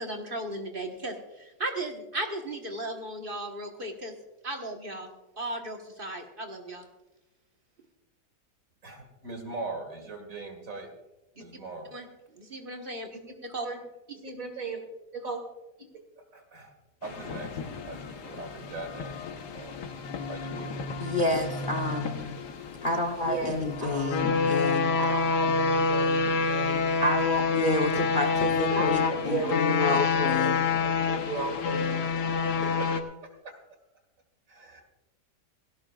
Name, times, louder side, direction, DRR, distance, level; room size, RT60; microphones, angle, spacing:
voice 1, 0.0-4.1 4.4-5.1 5.4-6.8 11.9-12.1 12.4-13.1 13.4-13.7, right 1 dB, 35° right, 3 dB, 1.4 m, -36 dB
voice 2, 8.8-10.9 11.4-11.9 13.1-13.2 13.6-13.8 14.2-14.8 15.1-15.4 16.3-16.7 17.0-17.5 17.8-19.2 19.5-19.8 20.3-20.7 23.1-24.4 25.0-26.9 28.7-32.4 34.5-34.8, right 3 dB, 50° right, 5 dB, 2.2 m, -37 dB
sound 1, 17.0-33.0, left 4 dB, 75° left, 1.7 m, -28 dB
voice 3, 21.0-22.4 22.8-25.0 27.0-30.6, left 2 dB, 40° left, 5 dB, 0.9 m, -29 dB
17.0 x 17.0 x 2.4 m, 1.0 s
omnidirectional pair, 1.8 m